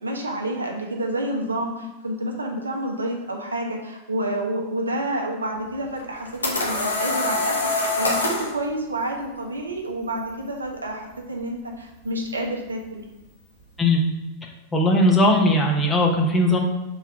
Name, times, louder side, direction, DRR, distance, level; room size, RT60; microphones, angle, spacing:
voice 1, 0.0-13.0, right 1 dB, 75° right, 1 dB, 1.0 m, -29 dB
sound 1, 6.0-8.5, left 2 dB, 75° left, 1.3 m, -24 dB
voice 2, 14.7-16.6, left 1 dB, 15° left, 0 dB, 1.1 m, -18 dB
5.7 x 4.1 x 4.9 m, 1.0 s
figure-of-eight pair, 90°, 0 cm